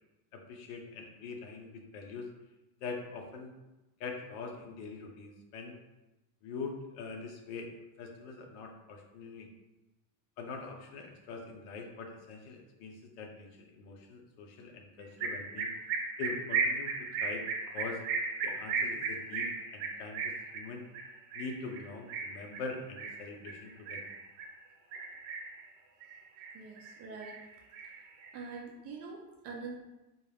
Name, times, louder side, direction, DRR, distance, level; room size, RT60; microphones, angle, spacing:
voice 1, 0.3-2.3 2.8-3.5 4.0-5.8 6.4-7.7 8.0-9.5 10.4-15.7 16.2-16.9 17.2-17.4 17.7-18.0 18.4-20.9 21.3-24.0, left 4 dB, 65° left, 2 dB, 0.8 m, -43 dB
sound 1, 15.2-24.5 24.9-25.6 26.0-26.9 27.2-28.5, right 4 dB, 65° right, 0.8 m, -36 dB
voice 2, 26.5-27.5 28.3-29.7, right 4 dB, 35° right, 0 dB, 0.4 m, -44 dB
4.2 x 2.4 x 3.4 m, 1.0 s
cardioid pair, 155°, 46 cm